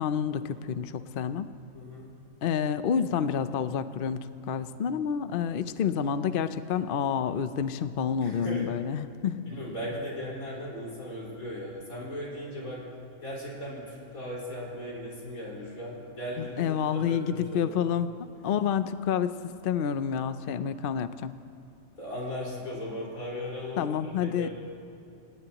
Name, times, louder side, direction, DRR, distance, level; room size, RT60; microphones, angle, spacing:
voice 1, 0.0-1.5 2.4-9.5 16.4-21.3 23.8-24.5, left 7 dB, 55° left, 11 dB, 0.6 m, -29 dB
voice 2, 1.7-2.1 8.2-8.7 9.5-12.8 13.2-16.6 16.9-17.7 22.0-24.5, equal, 85° left, -5 dB, 5.3 m, -37 dB
27.0 x 18.0 x 3.0 m, 2.8 s
omnidirectional pair, 1.4 m